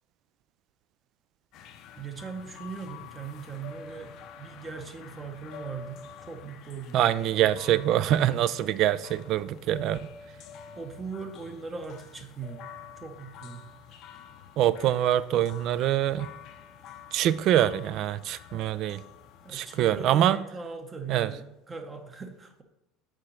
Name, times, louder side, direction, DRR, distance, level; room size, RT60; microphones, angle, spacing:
sound 1, 1.5-20.1, left 6 dB, 60° left, 0.5 m, -48 dB
voice 1, 2.0-7.1 7.4-8.0 10.8-12.6 12.9-13.7 19.4-22.6, right 5 dB, 25° right, 5 dB, 0.8 m, -40 dB
voice 2, 6.9-10.0 14.6-16.3 17.1-19.0 19.5-20.4 21.1-21.3, right 12 dB, 55° right, 17 dB, 0.3 m, -24 dB
4.8 x 3.8 x 5.5 m, 0.90 s
supercardioid pair, 110°, 0 cm